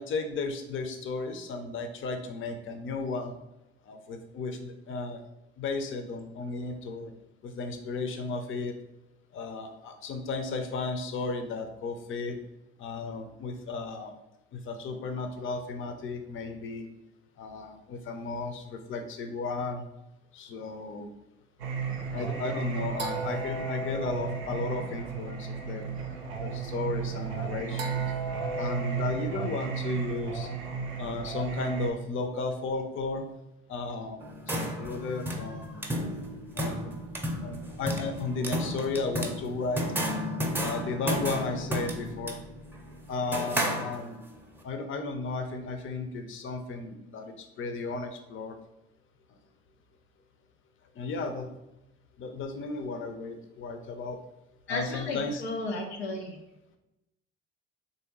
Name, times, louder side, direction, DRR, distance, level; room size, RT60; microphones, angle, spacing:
voice 1, 0.0-3.3 3.9-5.2 5.6-7.1 7.4-8.7 9.3-12.4 12.8-14.1 14.5-16.9 17.4-19.8 20.3-21.1 22.1-25.9 26.4-28.0 28.6-30.5 31.0-33.3 33.7-35.9 36.6-36.9 37.4-39.8 40.6-42.4 43.1-44.2 44.6-48.6 51.0-51.5 52.2-54.2 54.7-55.4, left 3 dB, 40° left, 6 dB, 0.6 m, -34 dB
Singing, 21.6-31.9, right 5 dB, 85° right, 0.5 m, -33 dB
sound 1, 34.2-44.4, equal, 5° right, 0.6 m, -33 dB
voice 2, 54.7-56.4, left 2 dB, 90° left, 1 dB, 0.5 m, -33 dB
3.3 x 2.7 x 3.0 m, 0.93 s
hypercardioid pair, 55°, 31 cm